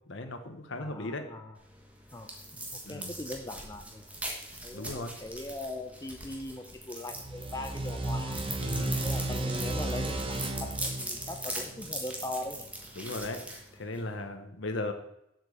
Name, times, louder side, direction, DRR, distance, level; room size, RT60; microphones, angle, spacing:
voice 1, 0.1-1.2 2.8-3.1 4.7-5.2 8.6-9.0 13.0-13.4 13.7-14.9, left 2 dB, 60° left, 7 dB, 1.0 m, -37 dB
voice 2, 0.7-1.5 2.1-2.3 2.6-4.0 4.6-8.4 9.0-12.7, left 1 dB, 15° left, 5 dB, 0.5 m, -40 dB
sound 1, 1.6-14.2, right 1 dB, 5° right, 1.4 m, -41 dB
sound 2, 7.1-12.4, right 2 dB, 25° right, 1.0 m, -34 dB
7.6 x 5.2 x 6.9 m, 0.81 s
head